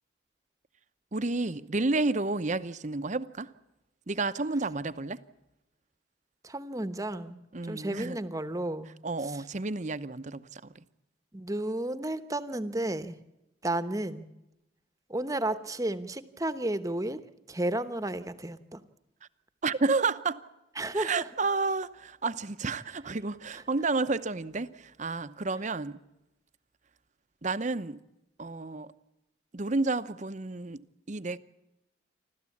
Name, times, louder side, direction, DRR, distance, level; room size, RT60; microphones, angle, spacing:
voice 1, 1.1-3.5 4.1-5.2 7.5-8.2 9.0-10.6 19.6-20.4 20.9-26.0 27.4-28.0 28.4-28.9 29.5-31.4, right 3 dB, 40° right, 13 dB, 0.8 m, -30 dB
voice 2, 6.4-8.9 9.2-9.4 11.3-13.2 13.6-14.3 15.1-17.2 17.5-18.8 20.8-21.3 23.5-23.6, right 1 dB, 15° right, 12 dB, 1.0 m, -32 dB
29.0 x 13.0 x 8.5 m, 0.93 s
head